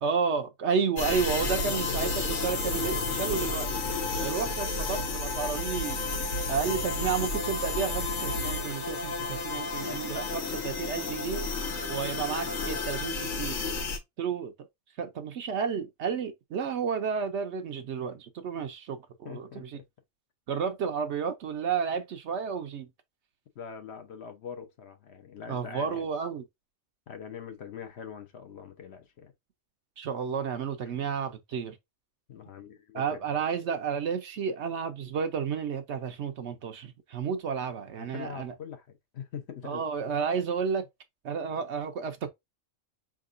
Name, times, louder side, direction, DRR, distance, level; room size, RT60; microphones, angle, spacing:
voice 1, 0.0-3.7 4.2-6.0 6.5-11.5 11.9-13.6 14.2-14.5 15.0-19.8 20.5-22.9 25.5-26.4 30.0-31.8 32.9-38.5 39.6-40.8 41.2-42.3, right 6 dB, 65° right, 0.9 m, -31 dB
sound 1, 1.0-14.0, left 3 dB, 85° left, 1.5 m, -31 dB
voice 2, 19.2-19.8 23.6-26.0 27.1-29.3 30.8-31.0 32.3-33.4 38.0-39.8, left 7 dB, 60° left, 0.9 m, -43 dB
4.6 x 3.7 x 2.5 m
omnidirectional pair, 1.4 m